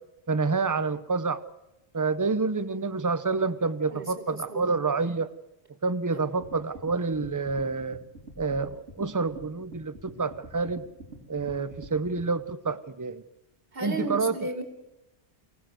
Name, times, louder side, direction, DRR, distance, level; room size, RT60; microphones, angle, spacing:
voice 1, 0.3-1.4 1.9-5.3 5.8-8.0 8.4-10.8 11.3-13.2 13.8-14.3, right 4 dB, 20° right, 14 dB, 0.8 m, -28 dB
voice 2, 3.9-4.7 6.1-6.2 13.7-14.6, right 1 dB, 55° right, 5 dB, 3.1 m, -34 dB
sound 1, 6.4-12.3, right 2 dB, 85° right, 4.3 m, -45 dB
25.0 x 18.0 x 7.9 m, 0.94 s
omnidirectional pair, 1.1 m